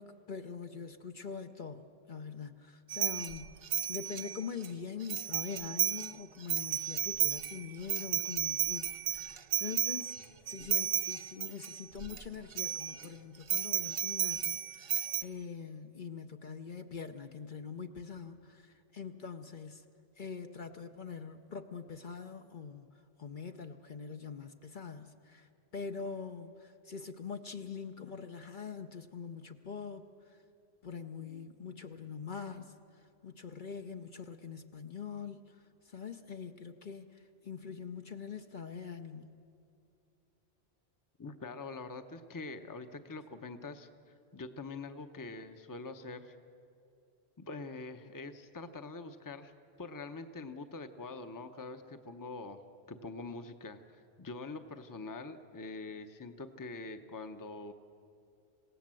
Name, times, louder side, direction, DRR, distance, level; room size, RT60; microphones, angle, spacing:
voice 1, 0.0-3.6 3.9-10.2 10.5-19.8 20.2-22.9 23.2-30.4 30.8-39.4, left 6 dB, 50° left, 6 dB, 0.9 m, -44 dB
sound 1, 2.9-4.7 5.1-6.1 6.4-12.2 12.5-13.1 13.5-15.2, right 9 dB, 65° right, 1.0 m, -33 dB
voice 2, 41.2-43.9 44.3-46.3 47.4-49.5 49.8-52.6 52.9-57.7, left 3 dB, 20° left, 9 dB, 0.8 m, -44 dB
26.5 x 17.0 x 7.6 m, 2.6 s
omnidirectional pair, 1.1 m